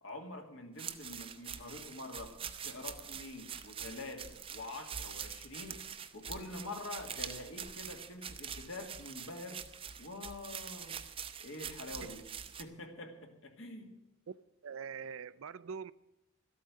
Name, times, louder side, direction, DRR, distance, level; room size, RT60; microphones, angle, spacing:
voice 1, 0.0-2.4 2.6-5.8 6.1-9.6 10.0-11.0 11.4-12.3 12.6-14.0, left 2 dB, 65° left, 1.9 m, -46 dB
sound 1, 0.8-12.6, right 7 dB, 25° right, 0.6 m, -45 dB
voice 2, 14.6-15.9, right 6 dB, 70° right, 0.4 m, -43 dB
13.0 x 8.5 x 9.1 m
head